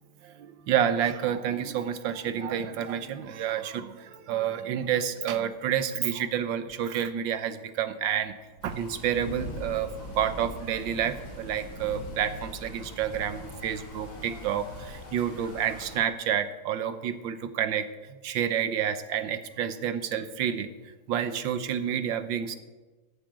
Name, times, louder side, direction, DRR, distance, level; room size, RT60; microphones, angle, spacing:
voice 1, 0.2-8.3 8.6-9.9 10.2-17.8 18.2-20.7 21.1-22.6, right 9 dB, 70° right, 11 dB, 1.5 m, -29 dB
sound 1, 8.6-16.0, equal, 65° left, 3.6 m, -41 dB
14.0 x 8.5 x 7.5 m, 1.2 s
omnidirectional pair, 2.3 m